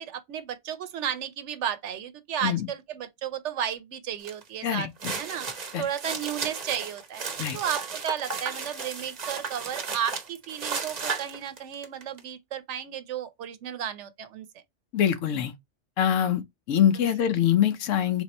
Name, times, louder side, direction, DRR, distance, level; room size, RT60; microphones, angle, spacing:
voice 1, 0.0-5.5 5.8-7.2 7.5-14.5 17.0-17.1, right 9 dB, 75° right, 0.9 m, -33 dB
sound 1, 4.2-4.4 4.8-12.2, right 5 dB, 40° right, 0.7 m, -34 dB
voice 2, 4.6-5.2 5.7-5.9 7.4-7.6 14.9-15.5 16.0-18.2, left 10 dB, 85° left, 1.0 m, -24 dB
3.5 x 2.9 x 4.0 m
omnidirectional pair, 1.3 m